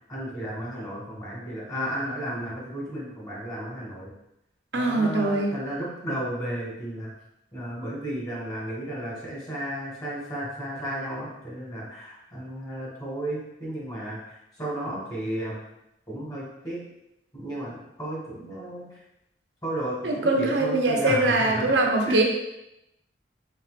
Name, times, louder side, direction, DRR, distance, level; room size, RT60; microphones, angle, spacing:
voice 1, 0.1-4.1 4.7-7.1 7.5-15.6 16.1-16.8 17.3-18.9 19.6-21.8 22.1-22.2, right 1 dB, 25° left, -5 dB, 1.6 m, -33 dB
voice 2, 4.7-5.5 20.0-22.2, right 2 dB, 90° right, 2 dB, 0.7 m, -22 dB
4.3 x 4.0 x 2.5 m, 0.85 s
head